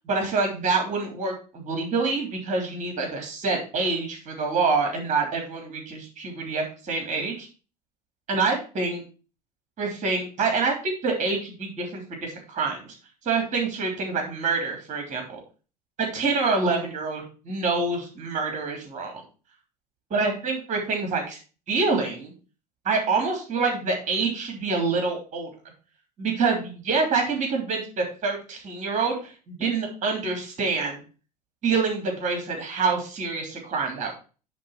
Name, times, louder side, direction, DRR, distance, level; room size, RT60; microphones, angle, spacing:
voice 1, 0.0-7.5 8.3-9.0 9.8-12.9 13.2-15.4 16.0-19.1 20.1-21.4 21.7-22.3 22.8-25.5 26.2-31.0 31.6-34.1, right 4 dB, 35° right, 2 dB, 3.0 m, -26 dB
9.8 x 3.6 x 5.8 m, 0.35 s
figure-of-eight pair, 70°, 21 cm